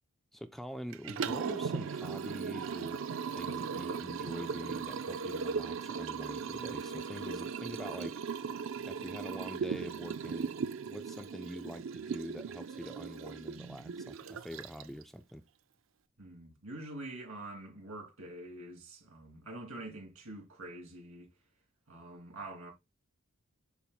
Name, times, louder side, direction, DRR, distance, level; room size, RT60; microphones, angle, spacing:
voice 1, 0.3-3.0 3.3-8.1 8.8-15.4, equal, ahead, 0.3 m, -45 dB
Liquid, 0.9-15.0, right 6 dB, 60° right, 0.4 m, -38 dB
voice 2, 16.2-21.3 21.9-22.7, right 2 dB, 80° right, 3.3 m, -46 dB
6.9 x 5.7 x 2.3 m
head